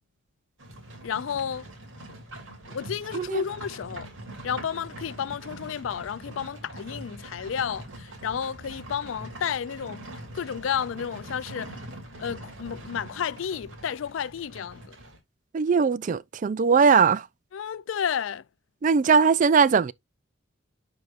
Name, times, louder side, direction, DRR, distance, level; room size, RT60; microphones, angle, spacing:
Livestock farm animals working animals, 0.6-15.2, right 1 dB, 80° right, 2.7 m, -43 dB
voice 1, 1.0-1.6 2.7-4.1 4.4-10.0 10.3-11.8 12.2-15.0 17.5-18.4, left 8 dB, 80° left, 0.4 m, -31 dB
voice 2, 15.5-17.2 18.8-19.9, right 5 dB, 40° right, 0.3 m, -20 dB
10.5 x 4.8 x 2.5 m
head